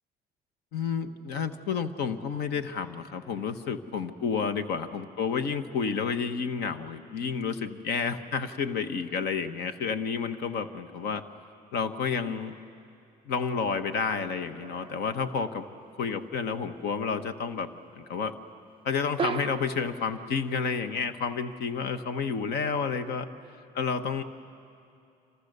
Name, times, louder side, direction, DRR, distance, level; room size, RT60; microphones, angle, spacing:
voice 1, 0.7-11.2 11.7-12.5 13.3-15.7 16.0-17.7 17.9-18.4 18.8-23.3 23.7-24.2, left 5 dB, 75° left, 10 dB, 1.2 m, -30 dB
sound 1, 14.6-15.2 19.2-20.1, right 6 dB, 30° right, 0.5 m, -35 dB
28.5 x 26.5 x 6.7 m, 2.6 s
cardioid pair, 110°, 17 cm